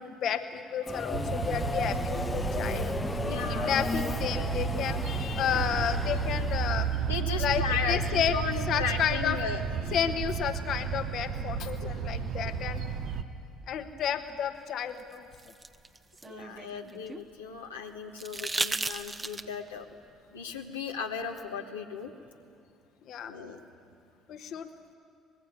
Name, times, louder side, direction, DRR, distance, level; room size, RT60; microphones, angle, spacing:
voice 1, 0.0-2.9 3.3-6.9 7.4-7.6 7.9-8.4 8.7-9.4 9.9-12.8 13.7-15.2 23.0-23.3 24.3-24.7, left 8 dB, 60° left, 7 dB, 1.3 m, -31 dB
Subway metro underground, 0.9-7.1, left 3 dB, 25° left, 0.6 m, -35 dB
sound 1, 1.1-13.2, right 6 dB, 60° right, 1.2 m, -32 dB
voice 2, 3.2-3.7 7.0-9.9 11.8-11.9 16.2-19.9 20.3-22.1 23.2-23.6, left 6 dB, 90° left, 0 dB, 1.4 m, -36 dB
sound 2, 15.0-17.3 18.2-19.7 21.4-21.5, right 3 dB, 25° right, 1.1 m, -35 dB
25.0 x 20.5 x 9.6 m, 2.5 s
hypercardioid pair, 55°, 0 cm